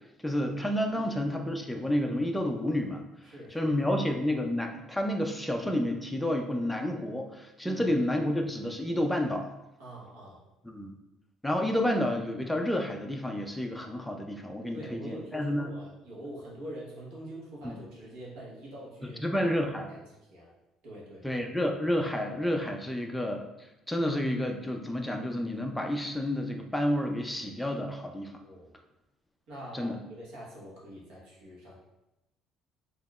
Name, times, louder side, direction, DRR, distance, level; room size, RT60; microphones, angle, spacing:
voice 1, 0.2-3.0 3.5-9.5 10.6-10.9 11.4-15.7 17.6-17.8 19.2-19.9 21.2-23.5 23.9-28.3 29.7-30.0, left 1 dB, 5° left, 2 dB, 0.4 m, -30 dB
voice 2, 0.9-1.3 3.2-4.0 7.6-7.9 9.8-10.5 14.7-19.2 19.9-20.5 20.8-21.4 28.4-28.7 29.5-31.8, right 1 dB, 75° right, -5 dB, 1.2 m, -44 dB
4.9 x 2.8 x 2.3 m, 0.94 s
cardioid pair, 150°, 0 cm